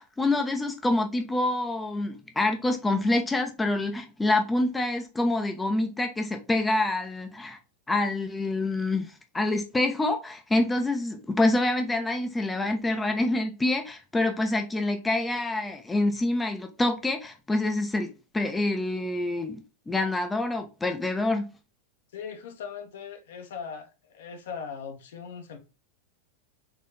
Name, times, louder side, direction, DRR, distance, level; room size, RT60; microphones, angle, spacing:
voice 1, 0.0-7.6 7.9-21.5, left 2 dB, 10° left, 0.5 m, -26 dB
voice 2, 22.1-25.6, left 6 dB, 60° left, 0.8 m, -39 dB
3.9 x 3.0 x 3.9 m
figure-of-eight pair, 90°, 0 cm